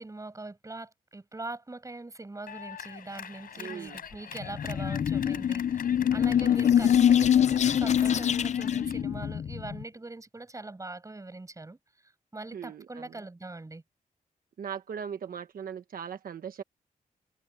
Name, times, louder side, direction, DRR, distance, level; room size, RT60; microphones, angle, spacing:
voice 1, 0.0-7.3 7.8-11.8 12.0-13.8, right 2 dB, 20° right, 7.5 m, -42 dB
Clapping, 2.5-9.0, left 8 dB, 90° left, 4.2 m, -44 dB
voice 2, 3.6-4.0 12.5-13.2 14.6-16.6, right 7 dB, 75° right, 1.2 m, -39 dB
sound 1, 4.4-9.8, left 9 dB, 50° left, 0.4 m, -24 dB
wide cardioid pair, 115°, 15 cm